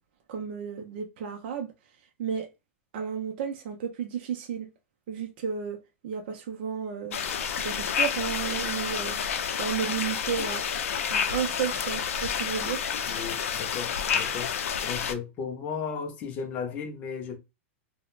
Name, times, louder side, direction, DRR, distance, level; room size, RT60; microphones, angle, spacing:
voice 1, 0.3-1.7 2.2-2.5 2.9-4.7 5.1-5.8 6.0-7.2 7.6-9.2 9.6-10.7 11.1-12.8, right 7 dB, 45° right, 0.4 m, -32 dB
sound 1, 7.1-15.1, left 7 dB, 85° left, 0.4 m, -29 dB
voice 2, 13.1-14.5 14.8-17.4, left 6 dB, 20° left, 0.4 m, -35 dB
2.3 x 2.0 x 3.0 m
supercardioid pair, 170°, 7 cm